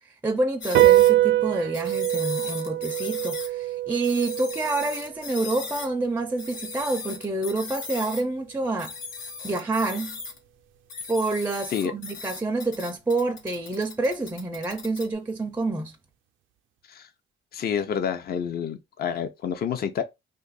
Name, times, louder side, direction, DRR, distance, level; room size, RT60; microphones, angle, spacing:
voice 1, 0.2-8.9 9.4-10.2 11.1-16.0, right 2 dB, 10° right, 0.4 m, -28 dB
sound 1, 0.6-1.1 1.7-3.5 4.0-5.9 6.4-8.2 8.8-10.4 10.9-15.1, left 5 dB, 85° left, 1.0 m, -38 dB
sound 2, 0.7-7.5, right 14 dB, 75° right, 0.4 m, -24 dB
voice 2, 17.5-20.0, left 8 dB, 50° left, 0.6 m, -28 dB
2.6 x 2.5 x 3.9 m
cardioid pair, 90°, 20 cm